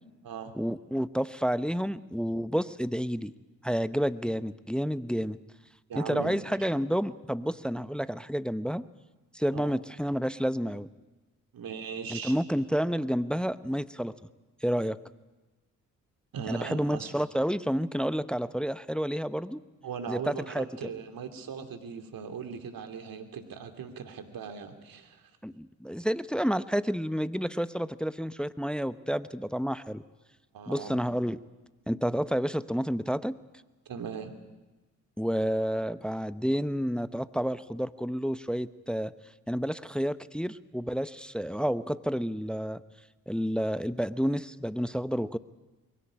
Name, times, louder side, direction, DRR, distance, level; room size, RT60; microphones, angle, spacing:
voice 1, 0.6-3.3 3.6-5.4 6.0-8.8 9.3-10.9 12.1-14.1 14.6-15.0 16.5-19.6 20.1-20.7 25.4-30.0 30.7-31.4 31.9-33.4 35.2-39.1 39.5-42.8 43.3-45.4, equal, ahead, 15 dB, 0.8 m, -30 dB
voice 2, 5.9-6.4 9.5-9.7 11.5-12.4 16.3-17.1 19.8-25.3 30.5-31.0 33.9-34.4, right 6 dB, 60° right, 7 dB, 2.7 m, -39 dB
22.5 x 17.0 x 9.8 m, 1.2 s
hypercardioid pair, 40°, 39 cm